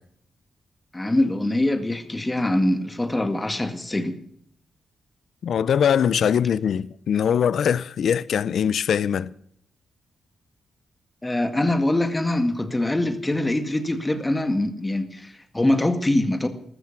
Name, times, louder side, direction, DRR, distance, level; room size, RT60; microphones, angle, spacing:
voice 1, 0.9-4.2 11.2-16.5, left 1 dB, 15° left, 1.8 m, -23 dB
voice 2, 5.4-9.3, left 8 dB, 75° left, 0.5 m, -22 dB
14.0 x 13.5 x 5.9 m
cardioid pair, 75°, 0 cm